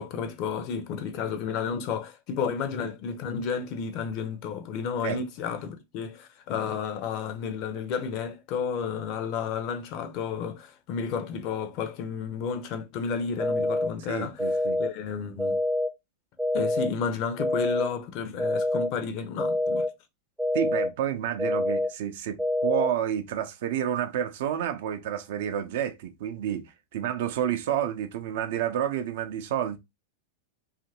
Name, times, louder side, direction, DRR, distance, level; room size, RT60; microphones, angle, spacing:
voice 1, 0.0-15.6 16.5-19.8, left 6 dB, 40° left, 0.5 m, -32 dB
sound 1, 13.4-13.9 14.4-14.9 15.4-15.9 16.4-16.9 17.4-17.9 18.4-18.9 19.4-19.9 20.4-20.9 21.4-21.9 22.4-22.9, left 1 dB, 5° right, 0.5 m, -26 dB
voice 2, 14.1-14.8 20.5-29.8, right 10 dB, 55° right, 0.5 m, -30 dB
2.8 x 2.5 x 2.7 m
figure-of-eight pair, 90°, 0 cm